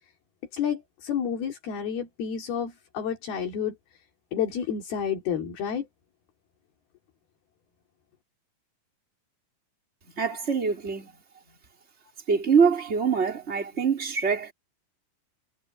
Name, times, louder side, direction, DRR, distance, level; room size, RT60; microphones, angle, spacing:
voice 1, 0.5-3.7 4.3-5.9, left 8 dB, 60° left, 5.0 m, -30 dB
voice 2, 10.1-11.1 12.3-14.5, right 6 dB, 15° right, 4.0 m, -24 dB
omnidirectional pair, 5.0 m